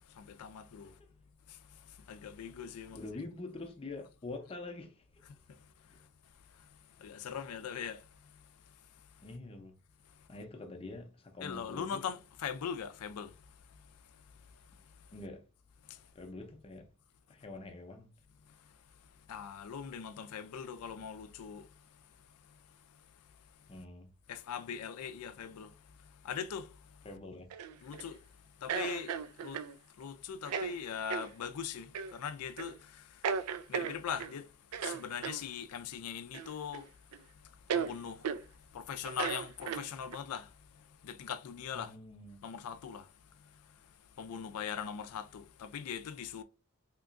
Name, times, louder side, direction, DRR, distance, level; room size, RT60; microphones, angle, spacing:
voice 1, 0.2-0.9 2.1-3.0 7.0-8.0 11.4-13.3 19.3-21.7 24.3-25.7 26.2-26.7 27.8-28.2 28.6-29.1 29.4-29.6 30.0-32.8 33.7-34.5 34.8-36.9 37.7-38.2 38.7-40.5 41.0-41.9 42.4-43.1 44.2-46.4, left 7 dB, 85° left, 0.4 m, -40 dB
voice 2, 2.9-5.2 9.2-9.8 10.3-12.0 15.1-15.4 16.1-16.9 17.3-18.1 23.7-24.1 27.0-27.5 41.7-42.4, left 2 dB, 25° left, 0.5 m, -45 dB
sound 1, 27.5-28.1 28.7-29.7 30.4-30.7 31.1-31.3 31.9-32.1 32.6-32.8 33.2-34.3 34.7-35.4 36.3-36.9 37.1-37.2 37.7-37.9 38.2-38.4 39.0-40.2, right 7 dB, 85° right, 0.4 m, -36 dB
3.5 x 2.9 x 2.4 m
head